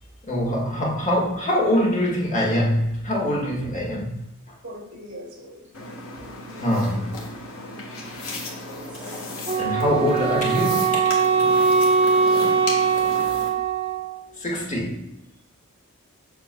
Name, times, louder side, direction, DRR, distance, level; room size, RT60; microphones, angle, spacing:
voice 1, 0.2-4.2 6.6-7.3 9.6-11.1 11.6-11.7 14.4-15.2, equal, 35° left, -2 dB, 1.4 m, -24 dB
voice 2, 4.6-5.7 8.7-9.2 12.0-12.4, equal, 55° right, -1 dB, 2.1 m, -42 dB
sound 1, 5.7-13.5, left 2 dB, 75° left, 1.5 m, -35 dB
Wind instrument woodwind instrument, 9.5-14.3, right 5 dB, 25° right, 0.5 m, -21 dB
7.5 x 5.9 x 2.2 m, 0.83 s
head